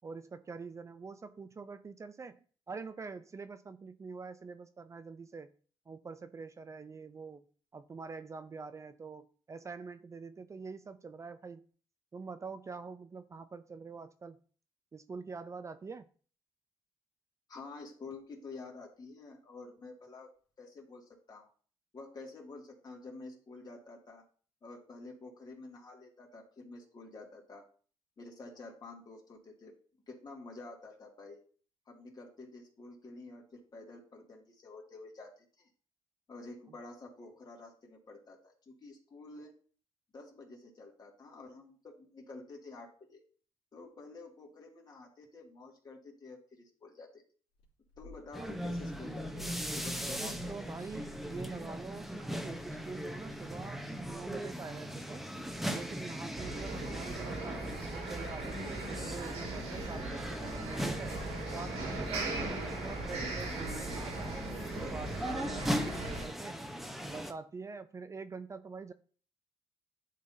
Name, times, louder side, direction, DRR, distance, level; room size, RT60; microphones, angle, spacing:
voice 1, 0.0-2.4 2.7-5.5 5.9-7.4 7.7-11.7 12.1-14.4 14.9-16.1 48.4-48.5 50.2-55.2 55.7-60.4 60.8-61.2 61.5-66.6 67.0-68.9, right 4 dB, 30° right, 11 dB, 0.4 m, -45 dB
voice 2, 17.5-20.3 20.6-21.5 21.9-24.3 24.6-27.7 28.2-29.7 30.1-31.4 31.9-35.7 36.3-39.5 40.1-43.2 43.7-47.2 48.0-50.7, left 3 dB, 40° left, -1 dB, 2.3 m, -49 dB
sound 1, 47.6-53.5 53.9-54.2 55.4-55.7 56.9-57.3, right 2 dB, 75° left, 2.6 m, -53 dB
sound 2, 48.3-67.3, equal, ahead, 0.8 m, -39 dB
sound 3, 56.4-66.3, right 2 dB, 80° right, 2.1 m, -39 dB
10.5 x 4.0 x 2.7 m, 0.42 s
cardioid pair, 80°, 10 cm